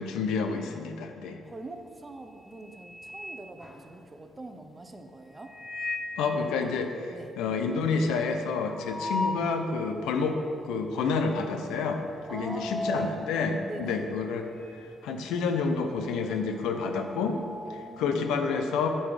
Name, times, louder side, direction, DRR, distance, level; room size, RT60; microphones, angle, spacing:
voice 1, 0.0-1.4 6.2-10.4 10.6-12.0 12.3-14.5 15.0-17.4 18.0-18.9, left 4 dB, 90° left, 6 dB, 0.7 m, -29 dB
voice 2, 1.4-5.5 7.1-7.4 12.3-13.2 13.6-14.1 17.7-18.3, right 2 dB, 20° right, 6 dB, 0.7 m, -44 dB
sound 1, 1.5-1.9 2.3-4.4 5.3-6.3 6.7-6.8 7.0-7.1 7.5-9.6 10.1-10.2 11.0-11.3 11.6-14.9 15.2-18.1, left 2 dB, 20° left, 0.9 m, -37 dB
8.5 x 5.6 x 4.9 m, 2.4 s
cardioid pair, 90°, 0 cm